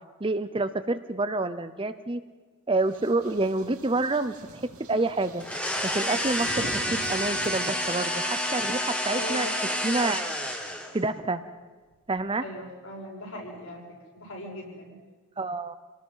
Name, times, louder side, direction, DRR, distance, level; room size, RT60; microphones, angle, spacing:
voice 1, 0.2-2.2 2.7-4.6 4.9-5.4 5.8-9.5 9.8-10.3 10.9-11.4 12.1-12.4 15.4-15.8, right 2 dB, 25° right, 11 dB, 0.6 m, -28 dB
sound 1, 2.8-7.5, right 1 dB, 85° right, 2.6 m, -45 dB
sound 2, 5.4-11.0, left 1 dB, 5° left, 1.5 m, -29 dB
voice 2, 9.1-9.6 12.4-13.8 14.1-15.0, left 1 dB, 70° left, -2 dB, 6.5 m, -39 dB
27.0 x 18.5 x 5.7 m, 1.3 s
head